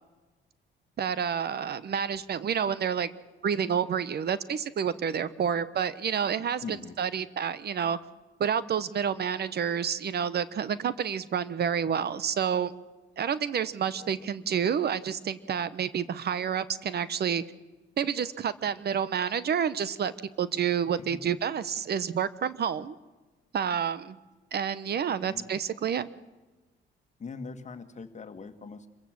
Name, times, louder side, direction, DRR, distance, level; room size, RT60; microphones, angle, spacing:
voice 1, 1.0-3.1 3.4-8.0 8.4-12.7 13.2-17.4 18.0-20.1 20.4-23.0 23.5-24.2 24.5-26.1, right 8 dB, 55° right, 16 dB, 1.0 m, -29 dB
voice 2, 6.6-7.0 14.0-14.3 21.0-21.4 25.2-25.5 27.2-28.9, left 4 dB, 35° left, 9 dB, 1.9 m, -42 dB
26.0 x 15.5 x 7.7 m, 1.2 s
cardioid pair, 90°, 20 cm